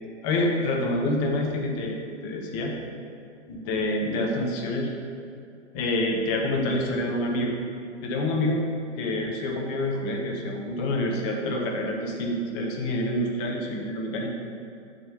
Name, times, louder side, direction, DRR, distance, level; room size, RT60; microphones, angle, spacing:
voice 1, 0.2-2.0 2.2-2.7 3.5-4.9 5.7-7.5 8.0-8.6 9.0-14.3, left 1 dB, 15° left, 0 dB, 0.4 m, -27 dB
5.0 x 4.8 x 5.5 m, 2.4 s
hypercardioid pair, 130°, 37 cm